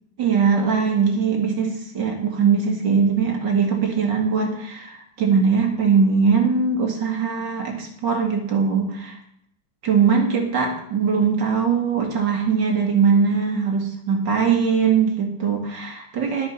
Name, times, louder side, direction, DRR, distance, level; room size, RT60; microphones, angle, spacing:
voice 1, 0.2-9.2 9.8-16.5, right 5 dB, 65° right, 2 dB, 2.7 m, -21 dB
11.5 x 7.5 x 6.3 m, 0.72 s
omnidirectional pair, 2.1 m